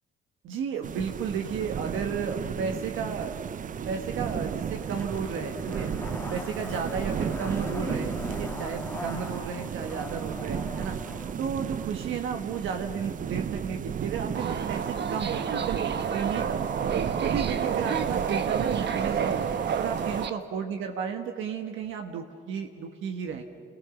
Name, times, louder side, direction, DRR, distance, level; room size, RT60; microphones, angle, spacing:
voice 1, 0.4-3.4 3.9-5.9 6.3-11.0 11.4-15.8 16.1-16.7 17.2-19.5 19.7-23.4, right 6 dB, 85° right, 4 dB, 1.5 m, -33 dB
sound 1, 0.8-20.3, right 8 dB, 40° right, 0.5 m, -34 dB
Zipper (clothing), 3.7-11.3 11.6-11.7, left 2 dB, 10° left, 2.0 m, -40 dB
Subway metro underground, 14.3-20.3, right 7 dB, 60° right, 1.3 m, -29 dB
28.0 x 19.0 x 7.2 m, 2.3 s
cardioid pair, 90°, 20 cm